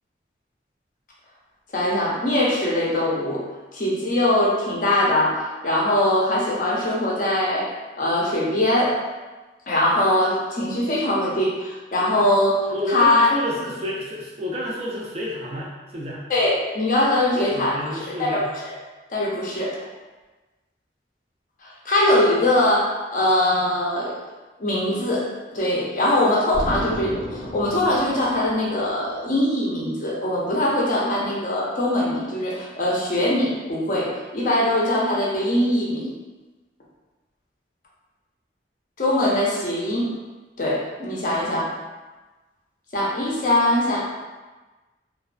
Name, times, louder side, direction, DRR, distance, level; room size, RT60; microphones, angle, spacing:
voice 1, 1.7-3.4 3.7-7.7 8.0-9.0 9.7-13.3 16.3-18.8 19.1-19.8 21.6-24.1 24.6-36.1 39.0-40.1 40.6-41.8 42.9-44.1, left 1 dB, 45° left, -4 dB, 0.5 m, -22 dB
voice 2, 12.7-16.2 17.3-18.5, left 1 dB, 35° right, -4 dB, 0.4 m, -29 dB
Explosion, 26.5-29.2, equal, 80° right, 1.2 m, -33 dB
2.3 x 2.2 x 2.4 m, 1.2 s
head